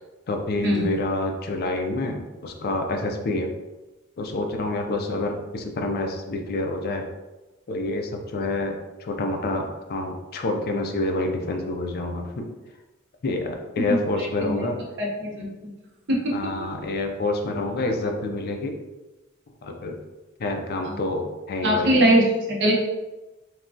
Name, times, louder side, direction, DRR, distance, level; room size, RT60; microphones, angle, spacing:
voice 1, 0.3-3.5 4.2-7.0 7.7-12.4 13.2-14.8 16.3-18.7 19.6-20.0 20.4-22.0, left 2 dB, 45° left, 3 dB, 0.4 m, -27 dB
voice 2, 13.9-14.6 15.0-15.4 16.1-16.2 21.6-22.7, right 1 dB, 55° right, -2 dB, 0.7 m, -21 dB
3.1 x 2.2 x 2.5 m, 1.1 s
head